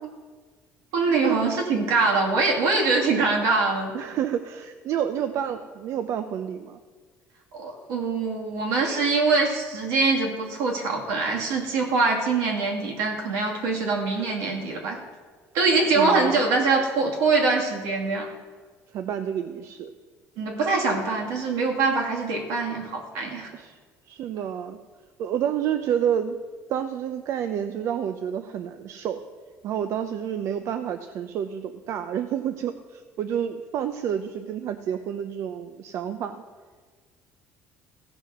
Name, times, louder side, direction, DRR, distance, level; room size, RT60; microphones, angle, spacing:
voice 1, 0.9-3.9 7.5-15.0 15.5-18.3 20.4-23.5, right 3 dB, 85° right, 0 dB, 2.5 m, -23 dB
voice 2, 3.9-6.8 15.9-16.4 18.9-19.9 23.5-23.8 24.1-24.8 25.2-26.4 26.7-29.2 29.6-36.4, right 9 dB, 60° right, 8 dB, 0.6 m, -29 dB
16.0 x 5.3 x 6.0 m, 1.5 s
cardioid pair, 115°, 5 cm